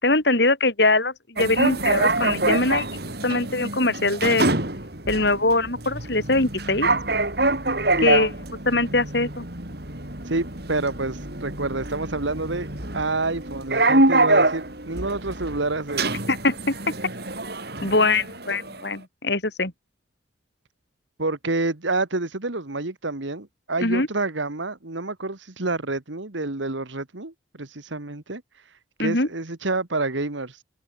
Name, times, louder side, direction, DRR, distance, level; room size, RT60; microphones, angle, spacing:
voice 1, 0.0-4.5 5.1-6.9 8.0-8.3 8.7-9.4 16.3-16.9 17.8-19.7 23.8-24.1 29.0-29.3, left 2 dB, 60° left, 4.2 m, -22 dB
sound 1, 1.4-18.9, right 2 dB, 55° right, 4.8 m, -25 dB
voice 2, 10.3-12.7 12.9-16.1 21.2-28.4 29.0-30.6, right 2 dB, 75° right, 1.8 m, -28 dB
head